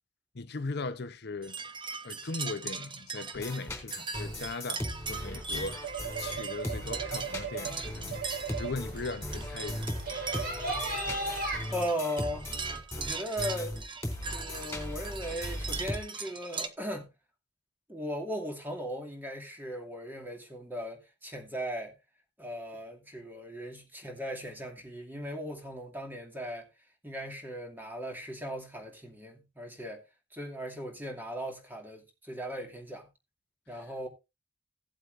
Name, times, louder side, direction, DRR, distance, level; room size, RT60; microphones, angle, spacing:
voice 1, 0.3-1.6 2.0-5.8 6.2-8.2 8.6-9.9, left 3 dB, 60° left, 0.8 m, -38 dB
sound 1, 1.4-16.7, right 5 dB, 25° right, 0.9 m, -40 dB
sound 2, 3.3-16.0, left 1 dB, 15° left, 3.7 m, -38 dB
sound 3, 5.2-11.6, right 3 dB, 60° right, 6.5 m, -37 dB
voice 2, 11.7-12.5 12.9-13.8 14.2-17.1 17.9-21.9 22.4-26.7 27.0-30.0 30.3-33.1 33.7-34.1, equal, 10° right, 2.4 m, -38 dB
17.0 x 8.0 x 2.6 m
head